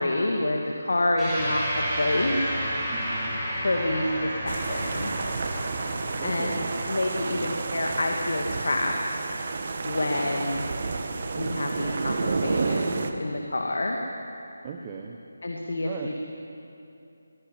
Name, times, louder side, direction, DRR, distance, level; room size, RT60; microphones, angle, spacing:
voice 1, 0.0-2.5 3.6-5.1 6.2-9.2 9.8-10.6 11.3-14.0 15.4-16.1, left 1 dB, 55° left, 1 dB, 2.2 m, -28 dB
sound 1, 1.2-9.9, equal, 5° right, 5.2 m, -33 dB
voice 2, 2.9-3.3 6.2-6.7 7.3-7.5 14.6-15.2 15.8-16.1, right 6 dB, 20° right, 3 dB, 1.2 m, -38 dB
sound 2, 4.5-13.1, right 4 dB, 40° right, 1.6 m, -30 dB
23.5 x 19.5 x 9.4 m, 2.7 s
figure-of-eight pair, 155°, 0 cm